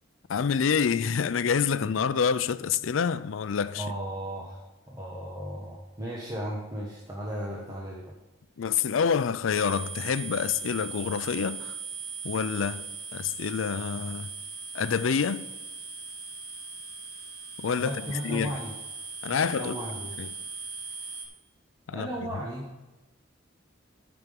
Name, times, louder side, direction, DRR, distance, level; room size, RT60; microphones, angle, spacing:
voice 1, 0.3-3.9 8.6-11.8 12.2-14.3 14.7-15.4 17.6-18.5 19.2-19.8 20.2-20.3 21.9-22.1, left 6 dB, 90° left, 0.5 m, -27 dB
voice 2, 3.7-4.6 4.9-8.1 17.8-18.7 19.3-20.1 21.9-22.7, right 1 dB, 20° right, 1.3 m, -35 dB
sound 1, 9.5-21.3, right 5 dB, 55° right, 2.6 m, -39 dB
12.0 x 6.1 x 5.2 m
head